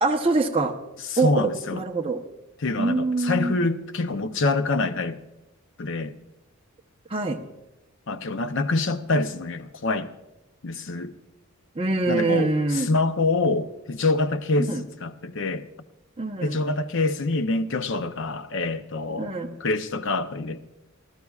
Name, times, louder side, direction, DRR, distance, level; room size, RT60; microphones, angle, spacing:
voice 1, 0.0-0.7 1.2-2.2 2.8-3.6 7.1-7.4 11.7-12.9 14.6-14.8 16.2-16.6 19.2-19.6, right 3 dB, 25° right, 0.9 m, -24 dB
voice 2, 1.1-1.8 2.6-5.2 5.8-6.1 8.1-10.1 10.6-11.1 12.1-15.7 16.4-19.3 19.6-20.7, left 3 dB, 60° left, 0.7 m, -26 dB
27.5 x 13.0 x 2.4 m
head